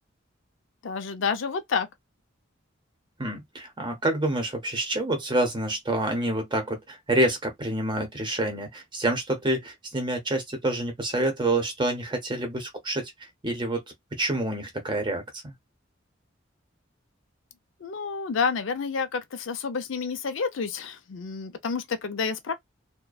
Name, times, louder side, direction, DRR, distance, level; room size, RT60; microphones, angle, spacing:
voice 1, 0.8-1.9 17.8-22.5, left 5 dB, 75° left, 0.5 m, -29 dB
voice 2, 3.2-13.1 13.4-13.8 14.1-15.5, right 1 dB, 25° right, 0.8 m, -27 dB
2.5 x 2.2 x 2.3 m
head